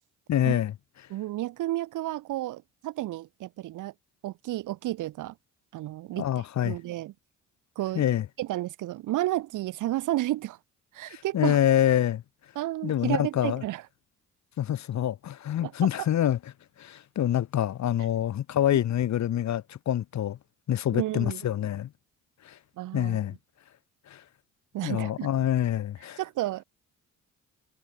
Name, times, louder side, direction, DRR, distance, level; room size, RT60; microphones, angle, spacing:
voice 1, 0.3-0.7 6.2-6.8 8.0-8.3 11.1-12.2 12.8-13.6 14.6-16.4 16.8-20.4 20.7-21.9 22.4-22.6 22.9-23.3 24.1-24.2 24.8-26.2, left 11 dB, 65° left, 2.1 m, -26 dB
voice 2, 1.1-3.9 4.2-5.3 5.7-6.3 6.6-7.1 7.7-8.0 8.4-10.6 10.9-11.6 12.5-13.8 15.6-15.7 18.7-18.8 20.9-21.4 22.8-23.2 24.7-25.3 26.2-26.6, right 15 dB, 85° right, 3.3 m, -31 dB
cardioid pair, 90°, 30 cm